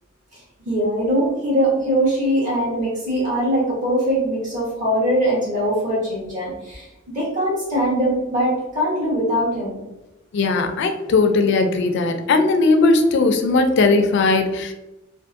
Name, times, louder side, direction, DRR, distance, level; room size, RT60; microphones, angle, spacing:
voice 1, 0.3-9.8, equal, 35° right, -6 dB, 0.9 m, -22 dB
voice 2, 10.3-14.7, left 3 dB, 55° left, 6 dB, 0.3 m, -18 dB
2.6 x 2.4 x 2.4 m, 0.99 s
head